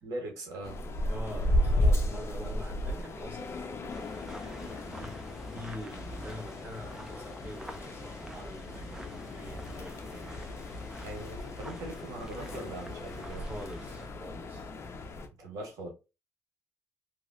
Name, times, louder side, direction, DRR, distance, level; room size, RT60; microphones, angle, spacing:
voice 1, 0.0-0.8 11.0-13.5 15.4-15.9, right 2 dB, 75° right, 1.5 m, -41 dB
sound 1, 0.6-15.3, left 1 dB, 45° left, 0.7 m, -34 dB
voice 2, 1.0-10.3 13.3-14.7, equal, 25° right, 1.4 m, -45 dB
sound 2, 3.9-14.1, right 1 dB, 5° right, 0.7 m, -47 dB
3.0 x 2.9 x 2.6 m
cardioid pair, 105°, 6 cm